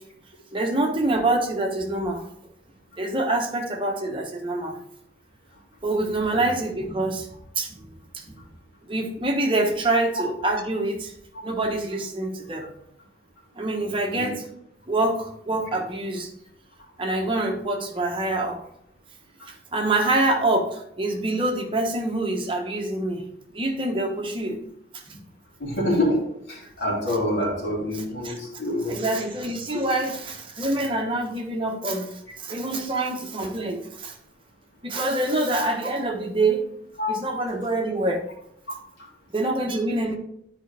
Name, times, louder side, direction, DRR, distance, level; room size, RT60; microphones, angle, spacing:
voice 1, 0.5-2.2 3.0-4.8 5.8-7.3 7.6-7.9 8.1-8.4 8.9-11.1 11.4-12.7 13.6-14.5 14.9-16.3 17.0-18.6 19.5-23.2 23.5-24.6 25.1-25.2 27.1-27.2 27.9-28.4 28.9-32.1 32.4-34.2 34.8-36.7 37.1-38.2 39.3-40.1, right 2 dB, 30° right, 2 dB, 1.1 m, -26 dB
voice 2, 25.6-26.2 26.5-29.0 37.0-37.1, left 1 dB, 85° left, -4 dB, 3.3 m, -26 dB
11.0 x 5.1 x 3.4 m, 0.75 s
head